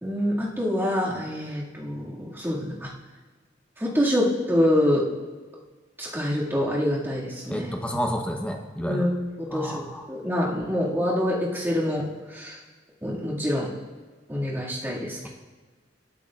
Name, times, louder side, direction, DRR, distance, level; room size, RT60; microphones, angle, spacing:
voice 1, 0.0-2.9 3.8-5.1 6.0-7.8 8.8-9.1 9.4-12.6 13.0-13.7 14.3-15.3, left 1 dB, 15° right, -6 dB, 2.3 m, -26 dB
voice 2, 7.5-9.1 9.5-10.0, equal, 5° left, 2 dB, 1.0 m, -30 dB
25.5 x 8.8 x 2.5 m, 1.3 s
head